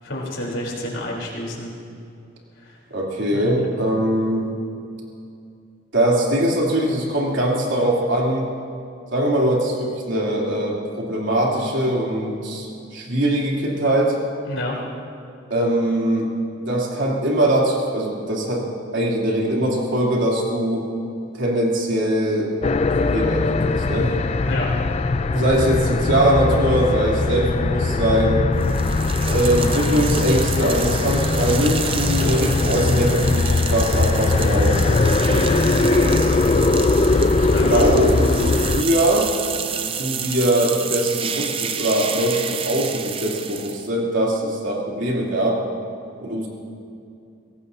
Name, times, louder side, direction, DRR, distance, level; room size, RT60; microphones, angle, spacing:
voice 1, 0.0-1.7 2.6-2.8 3.3-3.7 14.5-14.8 24.4-24.7 37.4-37.8, left 1 dB, 70° left, -3 dB, 4.0 m, -29 dB
voice 2, 2.9-4.5 5.9-8.5 9.1-14.2 15.5-16.3 16.6-18.6 18.9-20.9 21.3-22.5 23.0-24.1 25.3-28.4 29.2-36.3 37.3-39.3 39.8-45.6 46.2-46.5, right 1 dB, 65° right, -4 dB, 3.4 m, -22 dB
sound 1, 22.6-38.8, left 3 dB, 30° left, 0.4 m, -20 dB
sound 2, 28.6-43.9, right 7 dB, 25° right, 0.6 m, -30 dB
23.5 x 17.5 x 2.8 m, 2.5 s
head